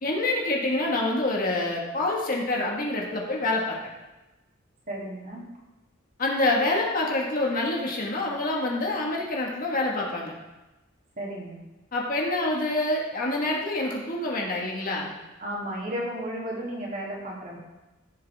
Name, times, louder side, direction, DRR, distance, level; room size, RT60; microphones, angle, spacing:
voice 1, 0.0-3.8 6.2-10.3 11.9-15.1, left 2 dB, 45° left, -2 dB, 1.9 m, -26 dB
voice 2, 4.9-5.4 11.2-11.6 15.4-17.6, right 1 dB, 45° right, -4 dB, 3.2 m, -33 dB
15.0 x 7.5 x 3.7 m, 1.1 s
head